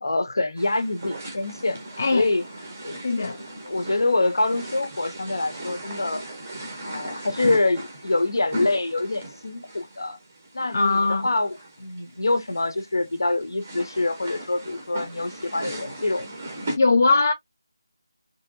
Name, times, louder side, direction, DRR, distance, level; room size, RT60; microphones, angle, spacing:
voice 1, 0.0-1.8 2.1-2.4 2.8-2.9 3.6-6.2 6.8-10.2 10.5-16.3, left 2 dB, 55° left, 0.7 m, -25 dB
sound 1, 0.6-16.8, right 1 dB, 15° right, 0.7 m, -38 dB
voice 2, 2.0-2.3 3.0-3.4 10.7-11.3 16.8-17.3, left 3 dB, 30° left, 0.3 m, -20 dB
3.0 x 2.7 x 2.5 m
figure-of-eight pair, 180°, 2 cm